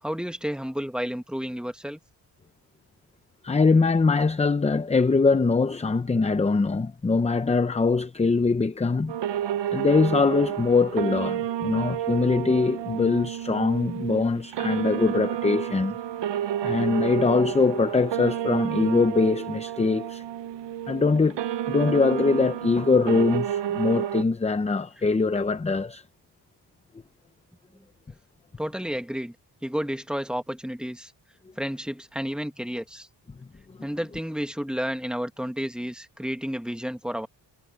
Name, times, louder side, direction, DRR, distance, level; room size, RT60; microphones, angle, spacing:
voice 1, 0.0-2.0 28.6-29.3 29.6-31.1 31.6-33.1 33.8-37.3, equal, ahead, 1.6 m, -31 dB
voice 2, 3.4-9.1 9.7-16.0 16.6-20.2 20.9-21.4 21.7-26.0, left 4 dB, 15° left, 0.6 m, -22 dB
sound 1, 9.1-24.2, right 10 dB, 90° right, 0.8 m, -30 dB
wide cardioid pair, 140°, 41 cm